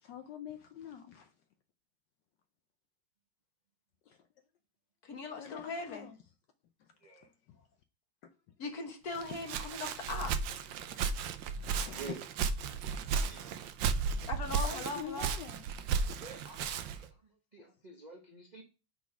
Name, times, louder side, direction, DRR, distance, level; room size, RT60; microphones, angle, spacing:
voice 1, 0.0-1.3 4.1-4.2 5.4-6.2 6.8-6.9 7.2-7.7 9.3-9.4 11.6-12.0 14.0-14.1 14.6-15.6, left 8 dB, 70° left, 1.1 m, -46 dB
voice 2, 5.0-6.1 8.6-10.3 14.3-15.4, left 3 dB, 50° left, 1.6 m, -39 dB
voice 3, 7.0-7.3 11.9-12.2 13.1-13.6 16.1-18.6, right 4 dB, 40° right, 0.6 m, -49 dB
Walk footsteps, 9.1-17.1, right 6 dB, 70° right, 1.3 m, -34 dB
6.0 x 3.9 x 5.7 m
omnidirectional pair, 2.2 m